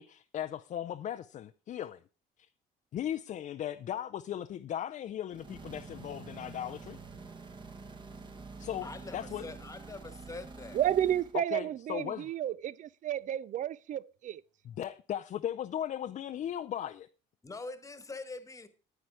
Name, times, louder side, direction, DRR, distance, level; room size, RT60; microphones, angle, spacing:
voice 1, 0.0-2.0 2.9-7.0 8.6-9.4 11.5-12.3 14.7-17.1, left 10 dB, 50° left, 0.5 m, -37 dB
sound 1, 5.3-11.4, right 4 dB, 30° right, 1.3 m, -47 dB
voice 2, 8.8-10.8 17.4-18.7, left 3 dB, 20° left, 1.3 m, -44 dB
voice 3, 10.7-14.4, right 11 dB, 50° right, 0.4 m, -31 dB
9.7 x 9.2 x 4.7 m
cardioid pair, 110°, 17 cm